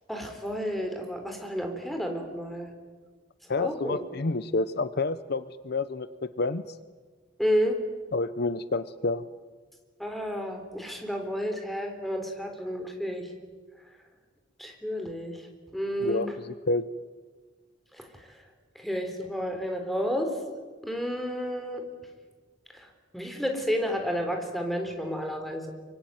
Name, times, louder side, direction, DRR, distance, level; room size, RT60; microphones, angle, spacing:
voice 1, 0.1-2.7 3.6-4.0 7.4-7.8 10.0-13.3 14.6-15.4 15.7-16.3 18.0-18.1 18.8-20.3 20.8-21.8 22.8-22.9 23.1-25.7, equal, ahead, 4 dB, 3.7 m, -31 dB
voice 2, 3.5-6.8 8.1-9.2 16.0-16.9, left 3 dB, 55° left, 14 dB, 0.7 m, -29 dB
25.0 x 24.5 x 9.3 m, 1.4 s
head